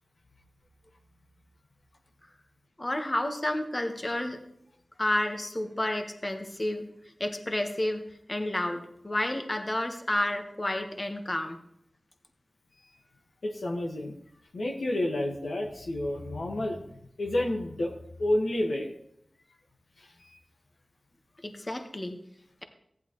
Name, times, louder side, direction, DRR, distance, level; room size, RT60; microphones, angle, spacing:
voice 1, 2.8-4.4 5.0-6.9 7.2-8.0 8.3-11.6 21.4-22.2, left 1 dB, 35° left, 5 dB, 1.3 m, -30 dB
voice 2, 13.4-14.2 14.5-17.9 18.2-18.9 20.0-20.1, left 1 dB, 85° left, 0 dB, 1.6 m, -30 dB
15.0 x 10.5 x 3.1 m, 0.75 s
cardioid pair, 40°, 0 cm